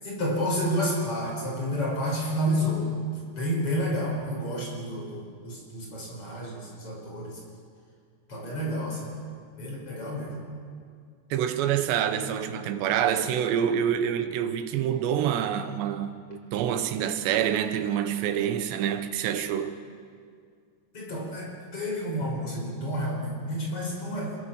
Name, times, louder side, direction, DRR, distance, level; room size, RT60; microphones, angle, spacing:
voice 1, 0.0-2.9 3.4-7.4 8.3-9.2 9.6-10.4 20.9-24.4, equal, 35° left, 6.1 m, -30 dB
voice 2, 11.3-19.8, right 9 dB, 90° right, 3.3 m, -27 dB
26.5 x 22.5 x 7.3 m
omnidirectional pair, 4.8 m